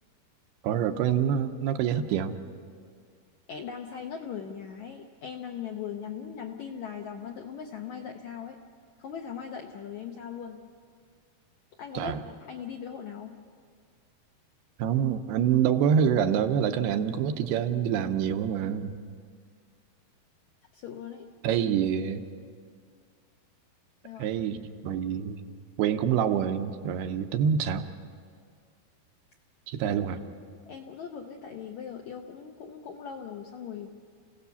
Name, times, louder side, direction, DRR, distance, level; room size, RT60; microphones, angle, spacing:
voice 1, 0.6-2.4 11.9-12.2 14.8-18.9 21.4-22.2 24.2-24.6 24.8-25.4 25.8-27.8 29.7-30.2, right 8 dB, 80° right, 7 dB, 2.8 m, -26 dB
voice 2, 3.5-8.6 9.0-10.6 11.8-13.3 20.7-21.3 21.6-21.7 24.0-24.3 29.8-29.9 30.4-33.9, left 7 dB, 80° left, 3 dB, 1.7 m, -39 dB
29.0 x 17.0 x 7.0 m, 2.1 s
omnidirectional pair, 4.6 m